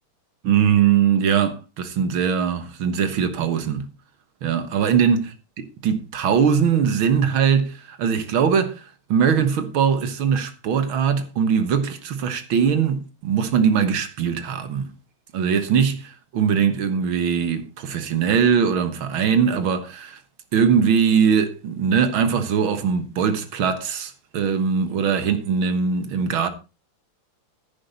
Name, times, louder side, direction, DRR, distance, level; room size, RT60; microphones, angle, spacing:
voice 1, 0.4-3.9 4.4-5.3 5.6-14.9 15.3-20.2 20.5-26.5, right 7 dB, 70° right, 2.1 m, -21 dB
10.5 x 9.7 x 4.2 m
omnidirectional pair, 2.4 m